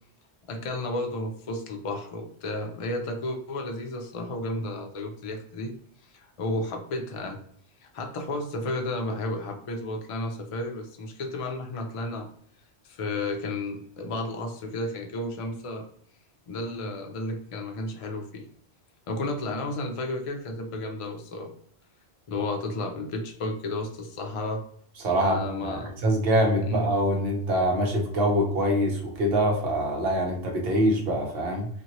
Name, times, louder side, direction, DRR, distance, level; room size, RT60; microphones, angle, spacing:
voice 1, 0.5-5.7 6.1-7.4 7.8-12.3 12.8-15.9 16.5-18.5 19.1-21.5 22.3-24.7 25.1-26.0 26.6-26.9, left 2 dB, 50° left, 4 dB, 0.4 m, -32 dB
voice 2, 25.0-31.7, equal, 65° right, 1 dB, 1.0 m, -24 dB
2.8 x 2.5 x 2.8 m, 0.64 s
omnidirectional pair, 1.1 m